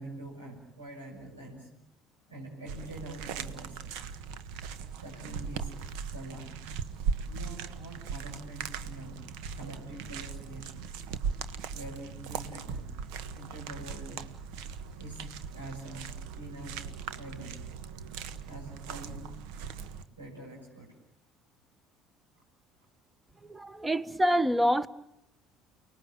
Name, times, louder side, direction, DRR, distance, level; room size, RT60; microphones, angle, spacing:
voice 1, 0.0-1.7 2.3-4.0 5.0-5.7 6.1-6.6 7.2-10.9 11.7-12.9 13.3-14.2 15.0-16.9 17.1-17.6 18.4-19.3 20.1-20.9, right 1 dB, 90° right, -3 dB, 6.8 m, -45 dB
sound 1, 2.7-20.0, right 6 dB, 65° right, 1.4 m, -39 dB
voice 2, 23.4-24.9, equal, 15° right, 15 dB, 1.3 m, -26 dB
29.5 x 20.0 x 8.9 m, 0.82 s
hypercardioid pair, 60°, 0 cm